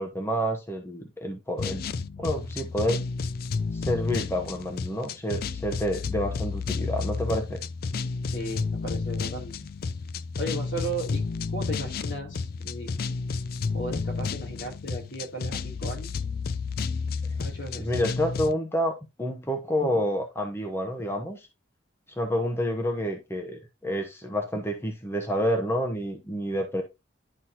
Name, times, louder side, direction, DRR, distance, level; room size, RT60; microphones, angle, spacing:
voice 1, 0.0-1.8 2.2-3.0 3.7-7.6 17.8-18.9 19.2-21.4 22.2-26.8, equal, 15° left, 1.0 m, -28 dB
sound 1, 1.6-18.5, left 4 dB, 50° left, 0.4 m, -31 dB
voice 2, 8.3-9.5 10.4-11.2 11.5-13.0 13.7-16.1 17.4-18.2, right 1 dB, 70° left, 2.9 m, -35 dB
11.0 x 4.2 x 2.8 m
head